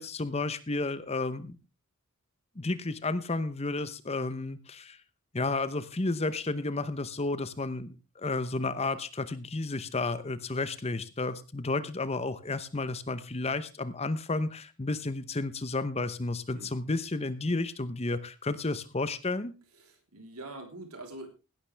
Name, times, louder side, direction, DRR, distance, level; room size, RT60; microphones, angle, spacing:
voice 1, 0.0-1.6 2.6-5.0 5.3-19.5, left 3 dB, 30° left, 14 dB, 0.8 m, -32 dB
voice 2, 19.8-21.3, right 2 dB, 85° right, 5 dB, 3.5 m, -44 dB
16.5 x 12.0 x 3.4 m, 0.30 s
head